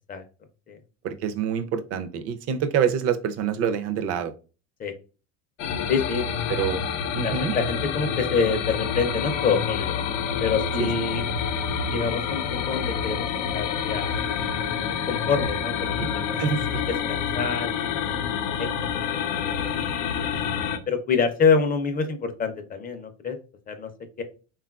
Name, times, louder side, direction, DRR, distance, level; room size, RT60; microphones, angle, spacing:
voice 1, 1.0-4.3 6.5-6.8 7.1-7.5 10.8-10.9 16.0-16.1 16.4-16.6, right 8 dB, 40° right, 11 dB, 0.4 m, -26 dB
sound 1, 5.6-20.8, left 7 dB, 85° left, 0.6 m, -28 dB
voice 2, 5.9-6.3 7.2-9.9 10.4-11.2 11.9-13.3 13.5-14.2 14.8-16.5 17.1-17.9 18.6-18.7 19.5-19.7 20.9-23.4 23.7-23.9 24.2-24.3, left 5 dB, 25° left, 7 dB, 0.4 m, -26 dB
3.4 x 2.3 x 2.3 m, 0.34 s
supercardioid pair, 110°, 37 cm